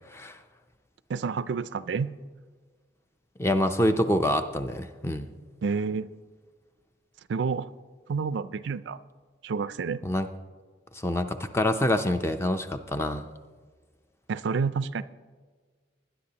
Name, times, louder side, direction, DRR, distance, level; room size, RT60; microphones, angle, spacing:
voice 1, 1.1-2.1 5.6-6.1 7.3-7.7 8.1-9.0 9.4-10.0 14.3-15.0, right 5 dB, 75° right, 15 dB, 0.4 m, -29 dB
voice 2, 3.4-5.3 10.0-10.3 10.9-13.3, left 1 dB, 15° left, 8 dB, 0.5 m, -26 dB
20.5 x 10.0 x 2.9 m, 1.5 s
head